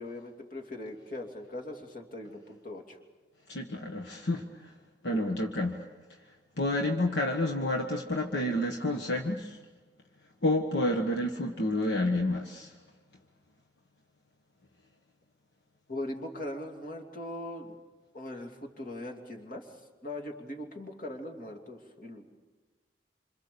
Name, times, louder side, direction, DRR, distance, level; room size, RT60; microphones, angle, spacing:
voice 1, 0.0-3.0 5.1-5.4 15.9-17.8 18.1-19.7 20.0-22.4, left 1 dB, 50° left, 2 dB, 2.9 m, -40 dB
voice 2, 3.5-4.7 5.0-5.8 6.1-9.6 10.4-12.8, left 1 dB, 70° left, 2 dB, 1.6 m, -30 dB
27.5 x 27.0 x 7.0 m, 1.3 s
head